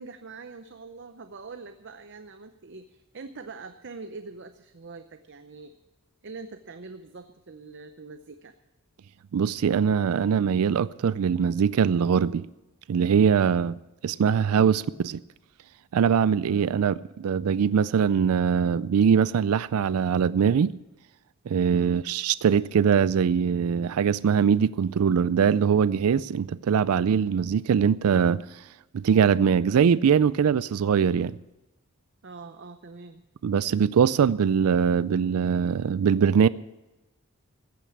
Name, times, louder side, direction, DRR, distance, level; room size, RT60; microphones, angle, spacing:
voice 1, 0.0-5.8 6.2-8.5 14.5-14.8 16.5-16.8 21.7-22.0 32.2-33.2, right 4 dB, 55° right, 0.7 m, -43 dB
voice 2, 9.3-12.5 12.9-13.8 14.0-15.2 15.9-20.7 21.5-28.4 28.9-31.4 33.4-36.5, right 7 dB, 85° right, 0.4 m, -22 dB
15.0 x 9.1 x 8.0 m
head